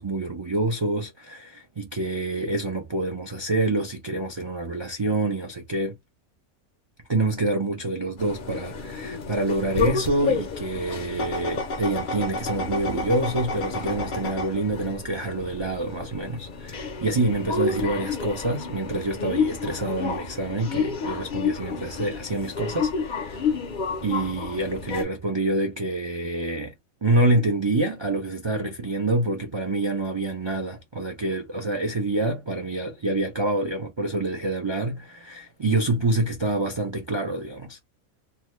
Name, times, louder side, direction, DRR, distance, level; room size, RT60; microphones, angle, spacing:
voice 1, 0.0-6.0 7.1-23.5 24.0-26.7 27.0-37.8, right 2 dB, 45° right, 0.3 m, -27 dB
sound 1, 8.2-25.0, left 5 dB, 55° left, 0.6 m, -30 dB
2.8 x 2.1 x 3.0 m
omnidirectional pair, 1.4 m